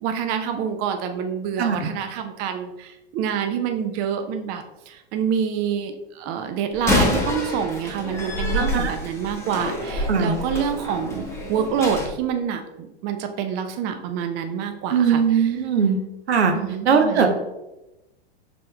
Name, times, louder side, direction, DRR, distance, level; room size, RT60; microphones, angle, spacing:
voice 1, 0.0-11.2 11.5-15.5 16.5-17.3, right 7 dB, 30° right, 7 dB, 0.4 m, -27 dB
voice 2, 1.6-1.9 8.5-8.9 10.1-10.4 14.9-16.0 16.3-16.5 16.8-17.3, right 6 dB, 80° right, 5 dB, 0.7 m, -20 dB
Slam, 6.7-12.1, left 1 dB, 10° left, 0.8 m, -27 dB
5.1 x 3.5 x 2.2 m, 0.97 s
hypercardioid pair, 105°, 32 cm